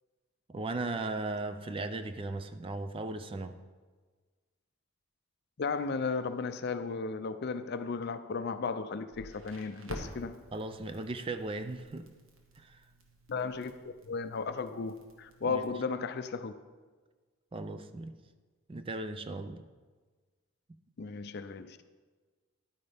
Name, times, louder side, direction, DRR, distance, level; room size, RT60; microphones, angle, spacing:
voice 1, 0.5-3.6 10.5-12.1 12.6-12.8 15.4-15.6 17.5-18.1 18.7-19.6, right 2 dB, 25° right, 0.4 m, -37 dB
voice 2, 5.6-10.4 13.3-16.5 21.0-21.8, left 4 dB, 50° left, 0.4 m, -35 dB
Crackle, 9.1-15.6, right 1 dB, 75° right, 1.4 m, -50 dB
11.0 x 9.5 x 3.5 m
head